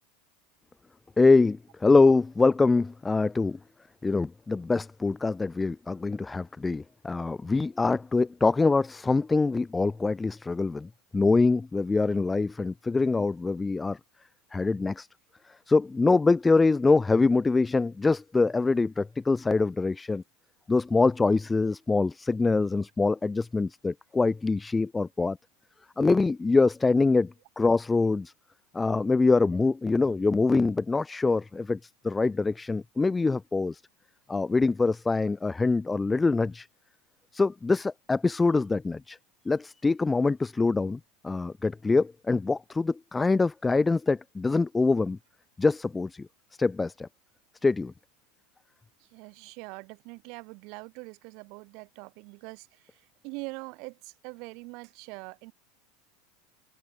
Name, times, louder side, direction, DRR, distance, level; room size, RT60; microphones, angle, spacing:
voice 1, 1.2-3.6 4.0-14.0 14.5-15.1 15.7-20.2 20.7-25.4 26.0-28.3 28.7-33.8 34.3-36.7 37.3-39.2 39.5-45.2 45.6-46.3 46.6-47.1 47.6-47.9, left 3 dB, 15° left, 0.5 m, -24 dB
voice 2, 49.0-55.5, right 30 dB, 60° right, 2.6 m, -43 dB
hypercardioid pair, 85°, 0 cm